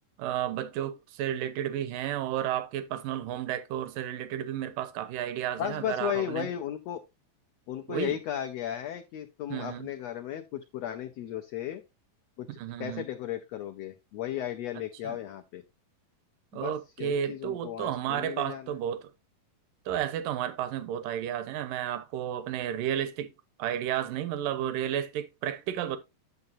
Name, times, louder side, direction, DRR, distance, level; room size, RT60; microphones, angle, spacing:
voice 1, 0.2-6.5 7.9-8.2 9.5-9.9 12.5-13.1 15.0-15.2 16.5-19.1 19.9-23.3 23.6-26.0, right 10 dB, 85° right, 2.5 m, -32 dB
voice 2, 5.6-7.0 7.7-11.8 12.4-15.6 16.5-18.8, left 11 dB, 85° left, 1.5 m, -35 dB
11.0 x 6.6 x 2.7 m
omnidirectional pair, 3.9 m